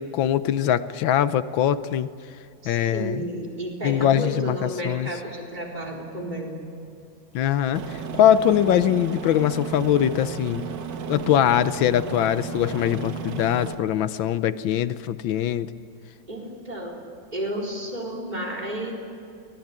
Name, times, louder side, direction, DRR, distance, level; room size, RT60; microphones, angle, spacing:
voice 1, 0.0-2.1 2.6-3.2 3.8-5.1 7.3-10.7 11.1-15.7, left 10 dB, 80° left, 14 dB, 1.5 m, -22 dB
voice 2, 2.6-6.6 16.3-17.0 17.3-18.9, right 1 dB, 20° right, -1 dB, 4.3 m, -32 dB
Aircraft, 7.7-13.7, right 6 dB, 65° right, 1.9 m, -34 dB
24.0 x 20.0 x 9.0 m, 2.4 s
omnidirectional pair, 2.1 m